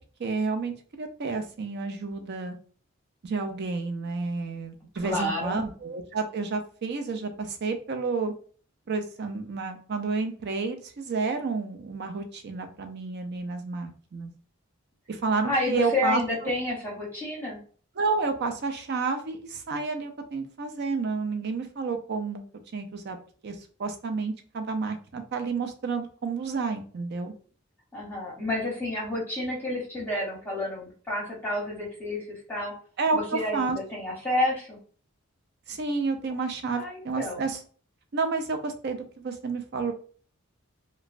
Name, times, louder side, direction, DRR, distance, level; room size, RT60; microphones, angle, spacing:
voice 1, 0.2-2.6 3.2-8.3 8.9-14.3 15.1-16.5 18.0-22.4 22.7-23.2 23.4-27.3 33.0-33.8 35.7-37.6 38.1-39.9, right 4 dB, 50° right, 7 dB, 0.5 m, -30 dB
voice 2, 5.0-5.6 15.5-17.6 27.9-32.7 33.1-34.8 36.7-37.4, left 1 dB, 10° left, -5 dB, 0.8 m, -30 dB
3.0 x 2.1 x 2.4 m, 0.43 s
head